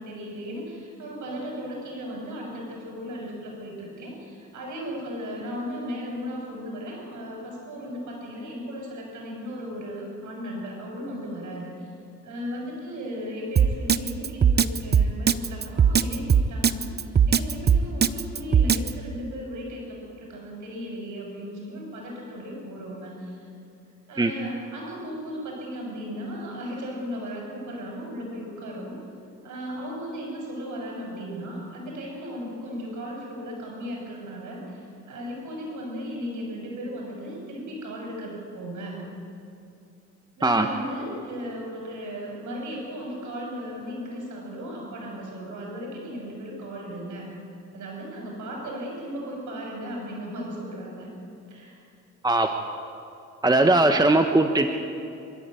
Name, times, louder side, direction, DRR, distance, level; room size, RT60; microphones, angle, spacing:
voice 1, 0.0-11.9 12.2-23.5 24.1-29.0 29.4-39.0 40.4-47.3 47.7-51.1 51.5-51.9, equal, 75° right, -1 dB, 7.2 m, -36 dB
Drum kit, 13.6-18.9, right 7 dB, 35° right, 0.8 m, -19 dB
voice 2, 52.2-52.5 53.4-54.7, right 2 dB, 15° right, 6 dB, 1.2 m, -19 dB
27.0 x 14.0 x 9.2 m, 2.6 s
cardioid pair, 90°, 30 cm